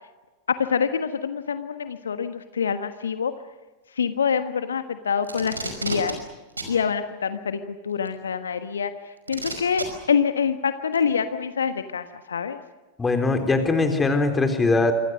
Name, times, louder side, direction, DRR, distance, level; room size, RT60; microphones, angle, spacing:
voice 1, 0.5-3.3 3.9-6.2 6.7-12.6, left 6 dB, 70° left, 10 dB, 1.3 m, -26 dB
Packing tape duct tape, 5.2-6.1 6.6-6.7 8.0-8.1 9.3-9.8 10.9-11.0, right 2 dB, 80° right, 5.4 m, -31 dB
voice 2, 13.0-14.9, left 3 dB, 15° left, 6 dB, 4.0 m, -21 dB
27.5 x 25.5 x 6.4 m, 1.2 s
figure-of-eight pair, 90°, 0 cm